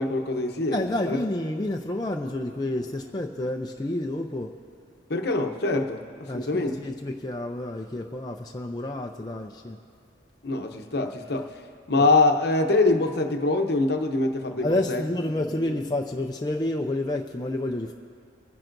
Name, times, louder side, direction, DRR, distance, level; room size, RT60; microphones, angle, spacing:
voice 1, 0.0-1.2 5.1-6.7 10.4-11.6 11.9-15.0 15.7-15.8, left 2 dB, 55° left, 4 dB, 0.9 m, -24 dB
voice 2, 0.7-4.5 6.3-9.8 11.9-12.1 14.6-17.9, left 1 dB, 20° left, 1 dB, 0.5 m, -29 dB
28.0 x 10.5 x 2.6 m, 2.3 s
head